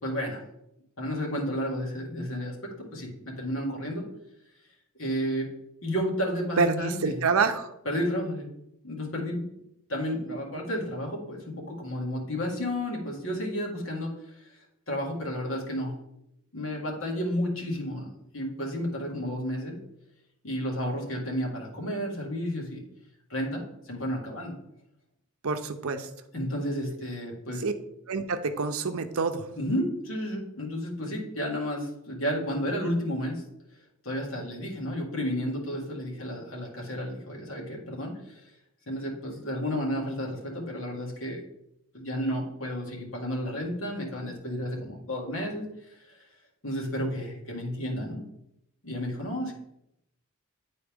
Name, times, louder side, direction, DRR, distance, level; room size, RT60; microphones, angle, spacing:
voice 1, 0.0-0.4 1.0-4.0 5.0-5.5 5.8-7.2 7.9-8.5 8.8-9.4 9.9-15.9 16.5-18.1 18.3-19.8 20.4-22.8 23.3-24.5 26.3-27.6 29.6-33.4 34.0-38.4 38.9-41.4 41.9-46.3 46.6-48.2 48.8-49.5, equal, 60° left, -1 dB, 1.9 m, -32 dB
voice 2, 6.6-7.7 25.4-26.1 27.6-27.7 28.1-29.5, right 4 dB, 70° right, 8 dB, 0.6 m, -27 dB
9.8 x 4.2 x 3.5 m, 0.80 s
head